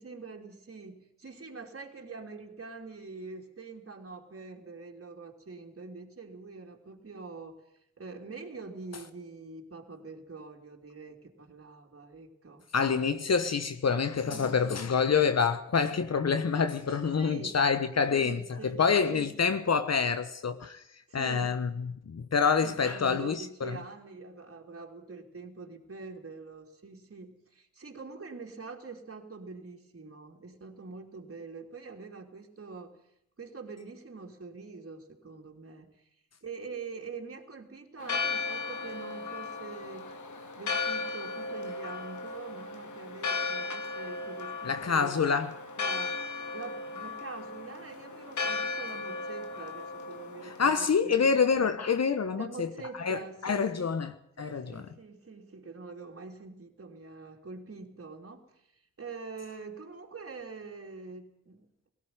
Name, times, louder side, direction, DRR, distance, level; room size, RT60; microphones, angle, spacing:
voice 1, 0.0-7.6 8.0-12.7 14.2-14.6 17.2-17.5 18.1-18.8 19.1-19.5 21.1-21.5 22.6-33.0 33.4-36.0 36.4-40.2 40.6-45.4 45.8-51.4 52.3-54.0 54.4-58.5 59.0-61.7, right 4 dB, 50° right, 3.2 m, -45 dB
voice 2, 12.7-20.8 21.1-23.8 44.6-45.5 50.4-52.7 53.0-54.8, left 5 dB, 60° left, 1.2 m, -27 dB
Church bell, 38.0-50.7, left 4 dB, 75° left, 2.4 m, -36 dB
17.5 x 15.5 x 9.5 m
supercardioid pair, 40°, 30 cm